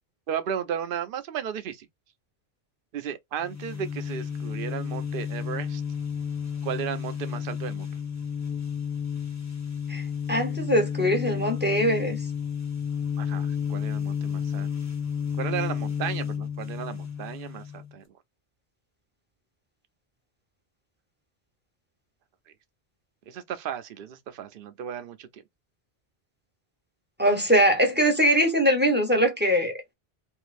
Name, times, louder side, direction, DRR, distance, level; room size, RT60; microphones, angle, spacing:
voice 1, 0.3-1.9 2.9-5.8 6.6-7.9 13.2-14.7 15.4-18.0 23.3-25.4, right 8 dB, 60° right, 0.7 m, -34 dB
sound 1, 3.4-17.9, left 7 dB, 15° left, 0.9 m, -31 dB
voice 2, 9.9-12.2 27.2-29.7, equal, 10° right, 0.9 m, -22 dB
3.6 x 2.7 x 2.5 m
omnidirectional pair, 1.1 m